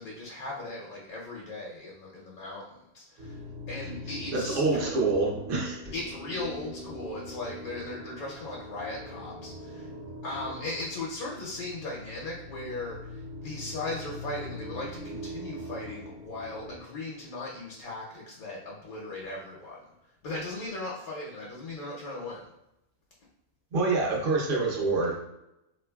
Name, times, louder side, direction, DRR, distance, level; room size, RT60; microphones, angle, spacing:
voice 1, 0.0-5.0 5.9-9.9 10.2-22.5, left 2 dB, 80° left, -4 dB, 1.2 m, -38 dB
sound 1, 3.2-16.8, equal, 65° right, 1.2 m, -42 dB
voice 2, 4.3-5.8 23.7-25.2, right 3 dB, 45° right, -2 dB, 0.8 m, -26 dB
3.6 x 3.0 x 2.2 m, 0.87 s
omnidirectional pair, 1.5 m